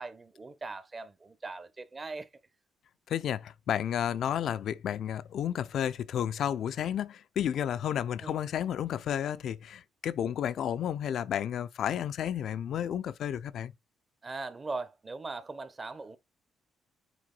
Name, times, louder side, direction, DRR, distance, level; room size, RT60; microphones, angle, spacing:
voice 1, 0.0-2.3 8.2-8.4 14.2-16.2, right 3 dB, 30° right, 1.1 m, -40 dB
voice 2, 3.1-13.7, left 9 dB, 70° left, 0.5 m, -32 dB
7.8 x 3.8 x 3.9 m
cardioid pair, 90°, 0 cm